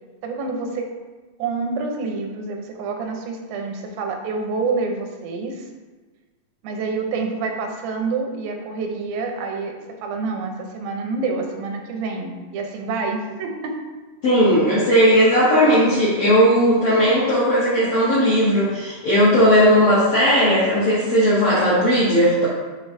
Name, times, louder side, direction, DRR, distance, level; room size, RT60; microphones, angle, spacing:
voice 1, 0.2-0.9 1.4-5.7 6.6-13.8 16.9-17.3, right 4 dB, 85° right, 3 dB, 2.6 m, -27 dB
voice 2, 14.2-22.5, equal, 65° left, -8 dB, 1.4 m, -16 dB
9.9 x 3.9 x 2.7 m, 1.3 s
omnidirectional pair, 4.1 m